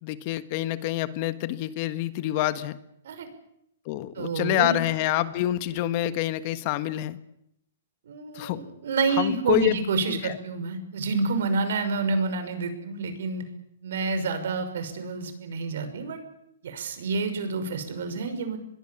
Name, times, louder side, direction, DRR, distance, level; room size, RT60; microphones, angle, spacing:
voice 1, 0.0-2.8 3.8-7.2 8.3-8.6 9.2-9.7 10.1-10.4, left 15 dB, 45° left, 12 dB, 1.5 m, -27 dB
voice 2, 4.2-4.9 8.1-13.4 13.8-16.2 16.6-18.6, right 4 dB, 75° right, 9 dB, 5.8 m, -28 dB
25.5 x 21.5 x 7.2 m, 0.77 s
hypercardioid pair, 145°, 0 cm